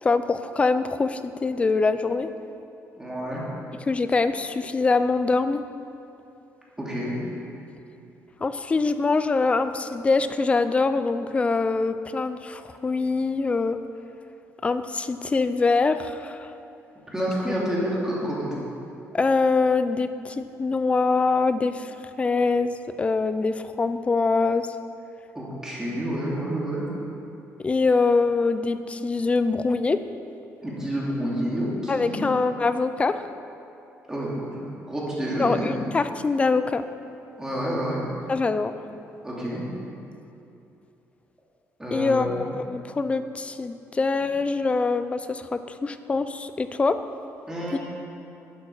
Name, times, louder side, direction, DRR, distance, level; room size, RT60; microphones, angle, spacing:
voice 1, 0.0-2.3 3.9-5.6 8.4-13.8 14.6-16.5 17.4-17.5 19.1-24.7 27.6-30.0 31.9-33.3 35.4-36.8 38.3-38.7 41.9-47.0 47.7-47.8, left 4 dB, 20° left, 11 dB, 0.5 m, -24 dB
voice 2, 3.0-3.4 6.8-7.2 17.1-18.5 25.3-26.9 30.6-32.2 34.1-35.8 37.4-38.0 39.2-39.6 41.8-42.4 47.5-47.8, equal, 10° right, -6 dB, 2.7 m, -29 dB
12.0 x 8.7 x 5.6 m, 2.8 s
cardioid pair, 145°, 6 cm